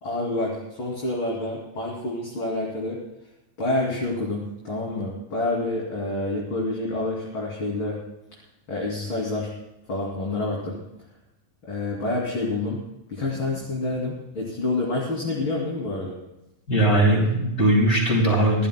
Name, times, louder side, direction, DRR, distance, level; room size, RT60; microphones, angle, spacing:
voice 1, 0.0-3.0 3.6-8.0 8.7-9.5 9.9-10.8 11.6-12.8 13.1-16.2, left 2 dB, 35° left, -4 dB, 3.2 m, -28 dB
voice 2, 16.7-18.7, right 1 dB, 20° left, -2 dB, 5.7 m, -19 dB
25.0 x 16.5 x 2.2 m, 0.91 s
omnidirectional pair, 4.1 m